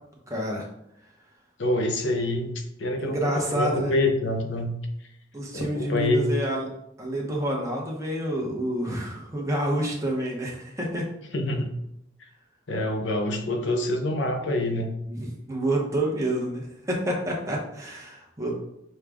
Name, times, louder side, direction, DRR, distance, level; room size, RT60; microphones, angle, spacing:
voice 1, 0.3-0.7 3.0-4.0 5.3-6.7 7.0-11.1 15.1-18.6, right 1 dB, 15° right, -2 dB, 0.9 m, -28 dB
voice 2, 1.6-2.5 2.8-4.7 5.5-6.2 11.3-11.7 12.7-14.9, left 1 dB, 70° left, 4 dB, 0.7 m, -26 dB
6.4 x 2.3 x 3.5 m, 0.80 s
head